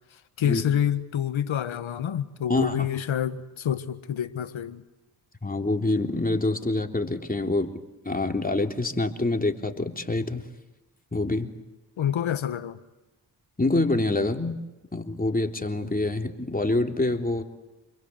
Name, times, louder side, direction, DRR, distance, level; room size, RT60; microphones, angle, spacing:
voice 1, 0.4-4.8 12.0-12.8, left 9 dB, 75° left, 1.6 m, -27 dB
voice 2, 5.4-7.7 8.0-10.4 11.1-11.5 13.6-14.6 14.9-17.4, left 2 dB, 20° left, 3.4 m, -26 dB
28.5 x 22.0 x 8.0 m
supercardioid pair, 40°, 47 cm